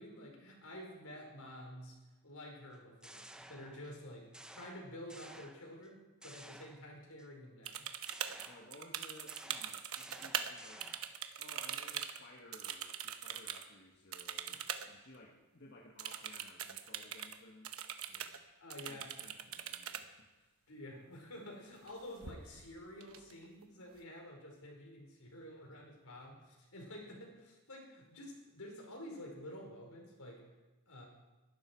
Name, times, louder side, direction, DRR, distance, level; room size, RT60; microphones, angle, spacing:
voice 1, 0.0-2.0 2.2-7.9 14.5-14.6 18.6-19.1 20.7-30.4 30.9-31.0, left 1 dB, 80° left, 0 dB, 5.0 m, -50 dB
sound 1, 2.7-4.0 4.3-5.9 6.2-7.3 8.1-11.2, right 1 dB, 5° right, 0.8 m, -55 dB
sound 2, 7.7-10.5 10.8-13.7 14.1-14.9 15.1-15.2 16.0-17.4 17.6-18.4 18.7-20.0 21.7-21.9 22.2-22.7 23.0-23.6, right 9 dB, 70° right, 1.1 m, -42 dB
voice 2, 8.5-10.9 11.3-17.7 18.1-18.3 18.8-20.6, left 1 dB, 50° left, -1 dB, 1.6 m, -58 dB
22.5 x 12.5 x 4.7 m, 1.1 s
head